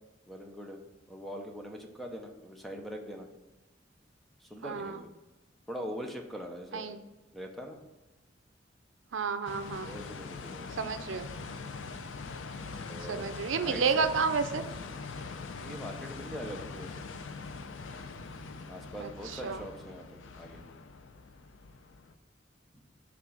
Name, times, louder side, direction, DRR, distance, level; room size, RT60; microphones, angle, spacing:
voice 1, 0.3-0.8 1.1-3.3 4.4-5.1 5.7-6.9 7.3-7.8 9.8-10.7 12.9-13.3 13.6-14.1 15.6-17.0 18.7-20.6 22.7-22.8, equal, ahead, 2 dB, 0.7 m, -42 dB
voice 2, 4.6-5.0 6.7-7.0 9.1-9.9 10.8-11.3 13.1-14.6 19.0-19.1 19.4-19.6, right 5 dB, 85° right, 9 dB, 0.5 m, -30 dB
sound 1, 9.5-22.1, left 4 dB, 90° left, 0.5 m, -43 dB
5.9 x 3.7 x 5.9 m, 1.1 s
head